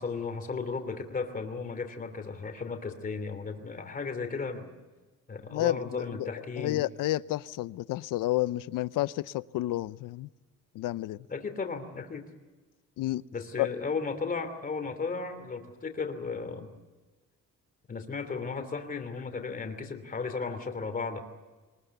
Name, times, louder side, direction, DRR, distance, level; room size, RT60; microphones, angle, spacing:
voice 1, 0.0-4.7 5.3-6.8 11.3-12.3 13.3-16.7 17.9-21.2, left 4 dB, 25° left, 2.9 m, -35 dB
voice 2, 5.5-5.8 6.1-6.3 6.6-10.3 10.7-11.3 13.0-13.2 13.6-13.7, left 16 dB, 80° left, 0.7 m, -30 dB
23.5 x 20.5 x 8.2 m
cardioid pair, 145°, 32 cm